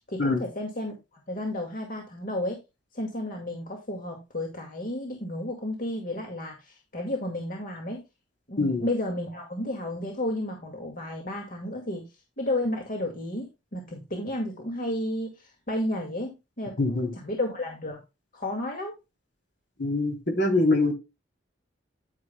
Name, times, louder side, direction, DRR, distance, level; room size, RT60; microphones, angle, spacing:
voice 1, 0.1-0.9 1.3-2.6 2.9-8.0 8.5-18.0 18.3-19.0, left 1 dB, 45° left, 2.1 m, -32 dB
voice 2, 16.8-17.1 19.8-20.9, left 2 dB, 65° left, 3.2 m, -24 dB
9.9 x 9.5 x 2.2 m
head